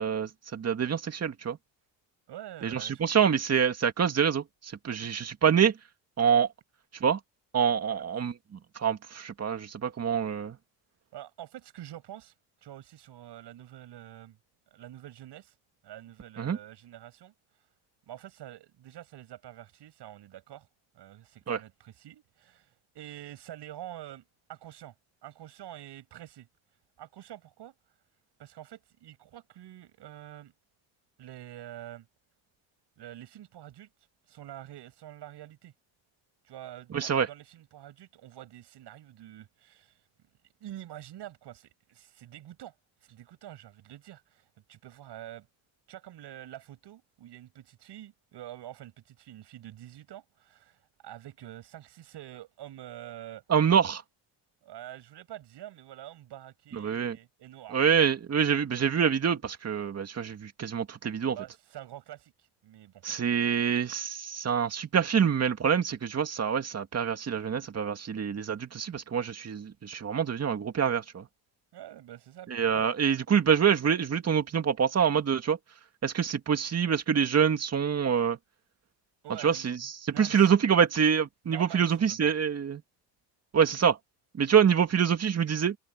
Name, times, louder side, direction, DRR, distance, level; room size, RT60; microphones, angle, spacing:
voice 1, 0.0-1.6 2.6-5.7 6.2-6.5 7.0-7.2 7.5-10.6 16.4-16.6 21.5-21.6 36.9-37.3 53.5-54.0 56.7-57.2 57.7-61.4 63.0-71.3 72.5-75.6 76.0-78.4 79.4-82.8 83.5-84.0 84.4-85.8, right 7 dB, 35° right, 2.3 m, -26 dB
voice 2, 2.3-3.0 4.9-5.0 5.5-5.6 11.1-14.4 14.7-15.6 15.8-17.3 18.1-20.7 20.9-24.2 24.5-24.9 25.2-26.5 27.0-27.7 28.4-30.5 31.2-32.1 33.0-33.9 34.3-35.7 36.4-40.1 40.6-42.7 43.0-45.5 45.9-53.4 54.6-57.8 61.3-63.0 71.7-72.9 79.2-79.7 80.1-80.6 81.4-82.3, right 12 dB, 60° right, 7.7 m, -46 dB
cardioid pair, 120°, 46 cm